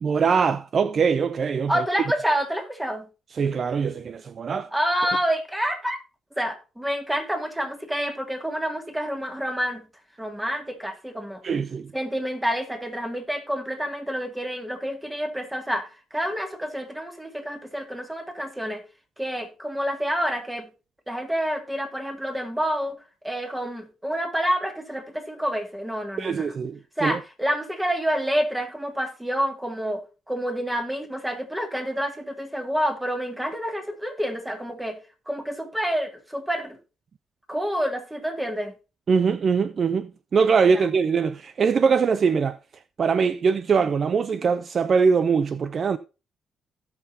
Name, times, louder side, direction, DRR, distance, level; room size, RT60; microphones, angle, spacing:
voice 1, 0.0-1.8 3.3-4.7 11.4-11.9 26.2-27.2 39.1-42.6 43.0-46.0, right 5 dB, 45° right, 0.5 m, -22 dB
voice 2, 1.7-3.1 4.7-6.0 6.4-9.8 10.2-11.4 11.9-18.8 19.2-20.7 21.1-26.5 27.0-35.0 35.3-36.8 37.5-38.7 40.7-40.9, equal, 5° right, 2.2 m, -28 dB
17.0 x 5.9 x 2.8 m
cardioid pair, 90°, 0 cm